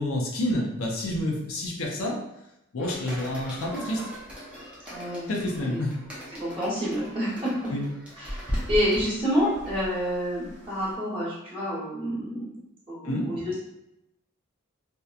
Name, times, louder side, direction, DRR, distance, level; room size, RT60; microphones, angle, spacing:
voice 1, 0.0-2.2 2.7-4.0 5.3-6.0 7.7-7.9 13.0-13.3, left 1 dB, 75° left, 0 dB, 0.5 m, -28 dB
sound 1, 2.8-10.9, equal, 5° right, 0.5 m, -38 dB
voice 2, 4.9-5.3 5.6-5.8 6.3-7.7 8.2-12.5 12.9-13.6, equal, 25° right, -8 dB, 0.9 m, -28 dB
2.7 x 2.1 x 2.3 m, 0.85 s
head